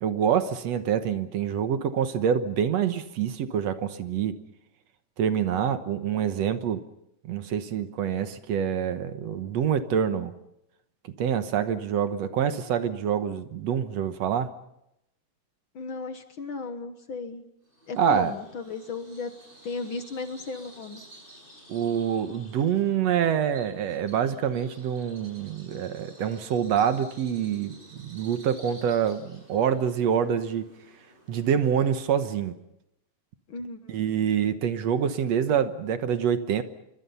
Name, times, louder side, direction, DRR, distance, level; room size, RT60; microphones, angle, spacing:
voice 1, 0.0-4.4 5.2-6.8 7.2-10.3 11.2-14.5 18.0-18.3 21.7-30.7 31.3-32.6 33.9-36.6, right 8 dB, 65° right, 10 dB, 2.2 m, -26 dB
voice 2, 15.8-17.4 17.9-19.3 19.6-21.0 33.5-34.0, left 4 dB, 55° left, 8 dB, 1.7 m, -35 dB
Bird vocalization bird call bird song, 17.7-32.5, right 1 dB, 15° right, 7.7 m, -52 dB
27.0 x 23.5 x 5.7 m, 0.83 s
omnidirectional pair, 3.3 m